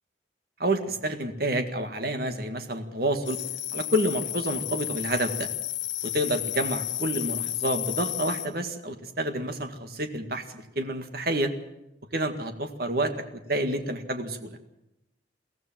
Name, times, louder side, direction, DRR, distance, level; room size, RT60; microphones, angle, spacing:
voice 1, 0.6-3.4 3.7-5.5 6.0-11.5 12.1-14.6, right 1 dB, 55° right, 7 dB, 1.9 m, -29 dB
sound 1, 3.2-8.5, left 14 dB, 75° left, 3.0 m, -32 dB
22.5 x 16.0 x 7.5 m, 0.87 s
head